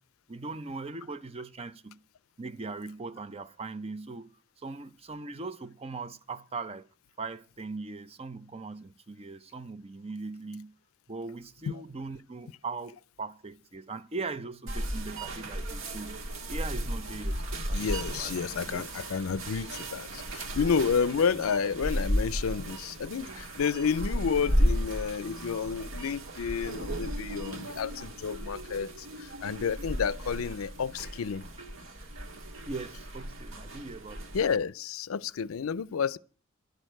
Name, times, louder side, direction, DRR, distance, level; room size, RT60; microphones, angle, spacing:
voice 1, 0.3-2.0 2.4-4.3 4.6-6.9 7.2-10.7 11.1-16.2 16.5-18.4 18.7-18.8 20.6-20.7 23.3-23.4 32.6-34.3, right 3 dB, 30° right, 0.6 m, -40 dB
sound 1, 14.7-34.6, equal, 65° right, 1.7 m, -34 dB
voice 2, 17.7-31.4 34.3-36.2, left 6 dB, 80° left, 0.5 m, -30 dB
11.5 x 6.4 x 9.0 m
head